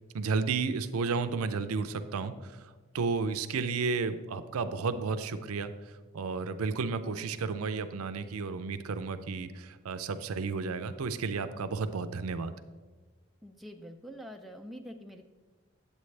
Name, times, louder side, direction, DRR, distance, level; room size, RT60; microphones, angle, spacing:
voice 1, 0.1-5.7 6.1-12.5, right 4 dB, 80° right, 11 dB, 0.5 m, -32 dB
voice 2, 13.4-15.2, equal, ahead, 5 dB, 0.3 m, -45 dB
8.3 x 8.2 x 3.2 m, 1.3 s
head